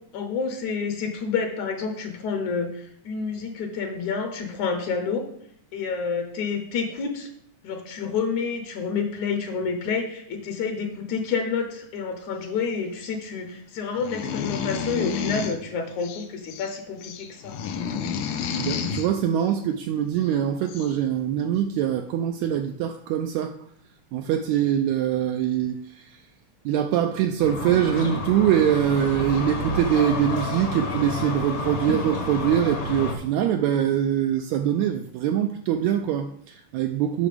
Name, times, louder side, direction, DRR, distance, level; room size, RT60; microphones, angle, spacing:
voice 1, 0.1-5.3 5.7-7.3 7.6-17.6, left 5 dB, 70° left, 5 dB, 2.2 m, -29 dB
sound 1, 14.0-15.6 16.0-16.7 17.0-19.1 20.3-20.4 20.7-21.0, left 7 dB, 90° left, 2.3 m, -30 dB
voice 2, 18.4-23.5 24.1-26.2 26.6-37.3, right 10 dB, 80° right, 7 dB, 1.6 m, -23 dB
sound 2, 27.4-33.2, left 2 dB, 50° left, 1.0 m, -30 dB
8.5 x 6.1 x 5.0 m, 0.68 s
omnidirectional pair, 3.6 m